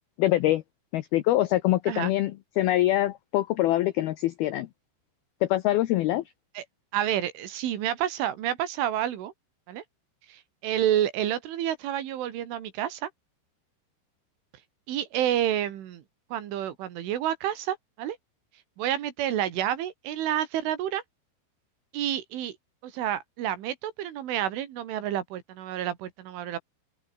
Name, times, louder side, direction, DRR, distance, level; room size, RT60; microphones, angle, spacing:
voice 1, 0.2-0.6 0.9-4.7 5.4-6.2, left 15 dB, 90° left, 2.2 m, -24 dB
voice 2, 6.9-9.3 9.7-9.8 10.3-13.1 14.9-16.0 16.3-18.2 18.8-21.0 21.9-22.6 22.8-26.6, right 11 dB, 80° right, 4.7 m, -29 dB
omnidirectional pair, 5.6 m